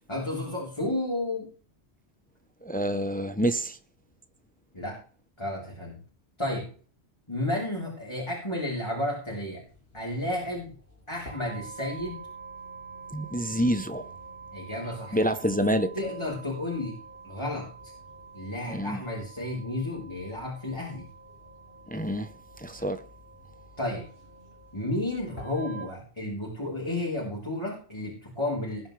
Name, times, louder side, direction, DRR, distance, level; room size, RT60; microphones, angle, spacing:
voice 1, 0.1-1.5 4.7-5.0 5.4-6.0 6.4-6.7 7.3-9.6 9.9-10.8 11.1-12.2 14.5-15.2 16.0-17.0 17.2-17.7 18.3-21.1 23.8-24.1 24.7-28.9, left 1 dB, 25° left, 4.0 m, -32 dB
voice 2, 2.6-3.8 13.1-14.1 15.1-15.9 18.7-19.0 21.9-22.3 22.6-23.0, equal, 10° left, 0.8 m, -27 dB
sound 1, 9.7-25.9, right 3 dB, 75° left, 6.4 m, -46 dB
20.0 x 9.4 x 3.4 m
omnidirectional pair, 1.1 m